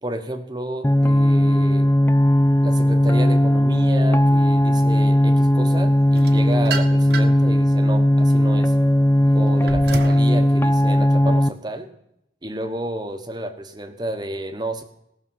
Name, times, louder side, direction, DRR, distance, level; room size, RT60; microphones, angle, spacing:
voice 1, 0.0-1.9 2.6-8.7 9.3-11.9 12.4-14.8, right 1 dB, 25° right, 7 dB, 1.1 m, -31 dB
sound 1, 0.8-11.5, equal, 15° left, 0.4 m, -17 dB
sound 2, 6.1-7.5 8.0-10.3, right 4 dB, 65° right, 1.1 m, -31 dB
18.5 x 6.5 x 5.6 m, 0.80 s
head